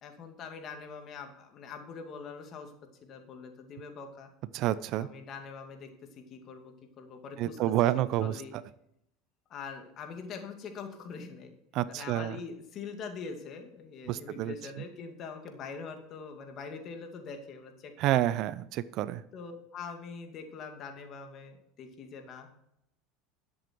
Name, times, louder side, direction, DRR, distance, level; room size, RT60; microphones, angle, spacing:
voice 1, 0.0-2.7 3.0-4.3 4.9-7.6 7.9-8.5 9.5-11.5 11.9-18.3 19.3-22.5, left 5 dB, 45° left, 4 dB, 2.3 m, -43 dB
voice 2, 4.5-5.1 7.4-8.4 11.7-12.4 14.1-14.5 18.0-19.2, right 13 dB, 55° right, 17 dB, 0.5 m, -29 dB
11.5 x 7.8 x 4.6 m, 0.77 s
hypercardioid pair, 95°, 0 cm